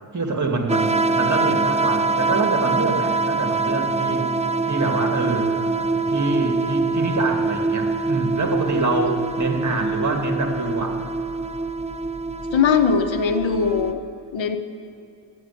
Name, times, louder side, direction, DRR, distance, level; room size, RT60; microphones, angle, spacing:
voice 1, 0.1-4.3 4.7-5.5 6.1-11.0, right 3 dB, 40° right, 3 dB, 2.0 m, -25 dB
sound 1, 0.7-13.9, right 3 dB, 15° right, 0.6 m, -24 dB
voice 2, 12.5-14.0 14.3-14.6, left 6 dB, 75° left, 8 dB, 1.0 m, -20 dB
10.5 x 7.9 x 9.8 m, 2.6 s
cardioid pair, 80°, 46 cm